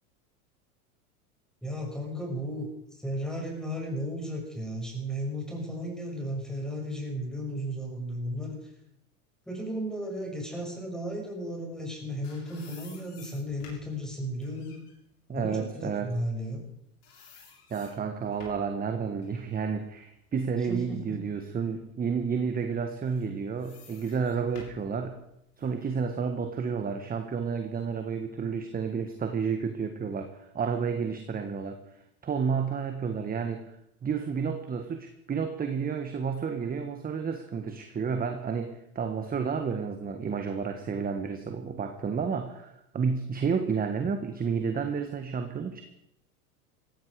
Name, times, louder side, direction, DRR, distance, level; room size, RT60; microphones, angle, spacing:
voice 1, 1.6-8.7 9.5-14.7 15.3-16.6 20.7-21.2, equal, ahead, 0 dB, 6.3 m, -34 dB
sound 1, 12.0-16.7 17.0-18.8 19.2-21.2 21.7-21.8 22.8-25.8, left 4 dB, 80° left, 7.1 m, -54 dB
voice 2, 15.3-16.1 17.7-25.2 25.6-31.8 32.2-33.8 34.0-45.8, right 6 dB, 20° right, 6 dB, 1.4 m, -31 dB
17.5 x 15.5 x 4.9 m, 0.79 s
hypercardioid pair, 105°, 45 cm